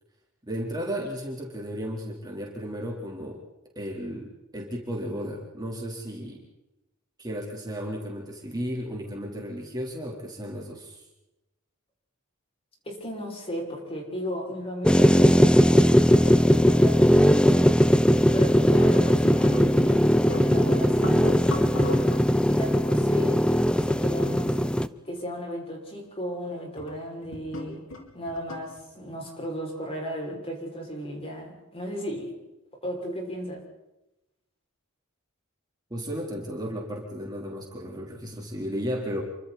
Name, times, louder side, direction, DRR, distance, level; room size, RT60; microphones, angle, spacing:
voice 1, 0.4-3.4 3.8-6.4 7.2-11.0 35.9-39.2, equal, 20° right, -1 dB, 3.9 m, -34 dB
voice 2, 12.8-17.8 18.3-22.1 22.5-23.5 23.8-24.6 25.0-27.8 28.1-32.3 32.8-33.6, equal, 30° left, 0 dB, 6.2 m, -35 dB
sound 1, 14.8-24.9, equal, 5° left, 0.7 m, -19 dB
sound 2, 18.3-20.0 20.3-22.3 23.0-23.4 24.1-24.2 24.8-25.2 25.9-26.0 26.8-27.0 27.2-28.8, left 2 dB, 65° left, 4.4 m, -37 dB
28.5 x 25.0 x 4.3 m, 0.95 s
head